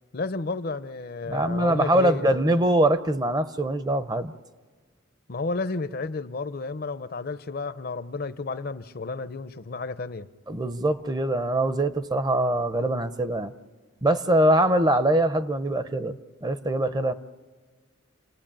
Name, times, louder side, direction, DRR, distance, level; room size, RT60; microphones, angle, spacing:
voice 1, 0.1-2.4 5.3-10.3, left 3 dB, 45° left, 0.6 m, -32 dB
voice 2, 1.3-4.3 10.5-13.5 14.0-16.1 16.4-17.1, right 1 dB, 20° right, 0.6 m, -23 dB
28.5 x 18.5 x 8.9 m
head